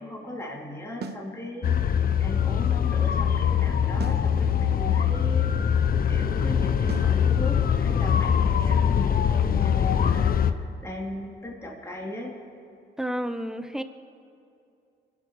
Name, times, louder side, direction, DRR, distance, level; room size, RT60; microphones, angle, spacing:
voice 1, 0.0-1.8 2.2-5.8 6.1-12.3, left 1 dB, 15° left, -3 dB, 3.2 m, -37 dB
sound 1, 1.0-1.3 4.0-4.3 6.9-7.2, right 5 dB, 55° right, 1.0 m, -37 dB
sound 2, 1.6-10.5, left 8 dB, 45° left, 0.8 m, -23 dB
voice 2, 13.0-13.8, equal, 5° right, 10 dB, 0.9 m, -30 dB
23.5 x 8.4 x 6.6 m, 2.6 s
cardioid pair, 90°, 20 cm